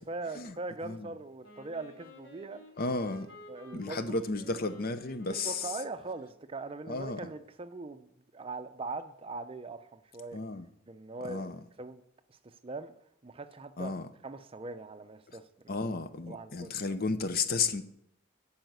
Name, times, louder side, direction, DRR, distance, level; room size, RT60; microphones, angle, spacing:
voice 1, 0.1-2.6 3.5-4.2 5.3-10.4 10.9-12.0 12.3-12.9 13.2-13.9 14.2-15.5 16.3-17.0, right 3 dB, 30° right, 0.5 m, -41 dB
Wind instrument woodwind instrument, 1.4-6.4, equal, 70° left, 2.3 m, -53 dB
voice 2, 2.8-3.3 3.7-5.7 6.9-7.2 10.3-10.7 11.2-11.6 13.8-14.1 15.7-17.8, left 3 dB, 50° left, 0.7 m, -33 dB
8.9 x 5.6 x 7.9 m
head